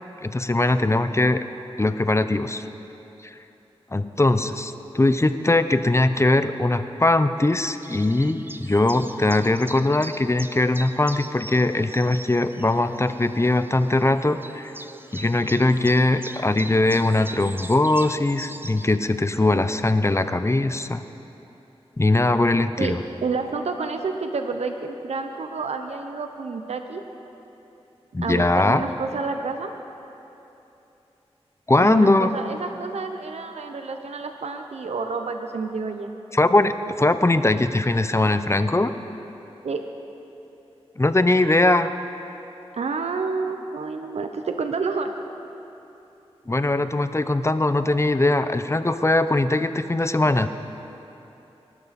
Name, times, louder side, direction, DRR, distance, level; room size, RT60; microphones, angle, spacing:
voice 1, 0.2-1.4 1.8-2.6 3.9-14.7 15.1-21.0 22.0-23.0 28.1-28.9 31.7-32.3 36.3-38.9 41.0-41.9 46.5-50.5, left 2 dB, 25° left, 11 dB, 0.7 m, -21 dB
sound 1, 7.7-19.0, right 2 dB, 20° right, 0.7 m, -41 dB
voice 2, 23.2-27.0 28.2-29.7 31.8-36.1 39.6-39.8 42.7-45.1, right 4 dB, 80° right, 6 dB, 0.8 m, -29 dB
22.5 x 12.5 x 4.2 m, 2.9 s
cardioid pair, 45°, 11 cm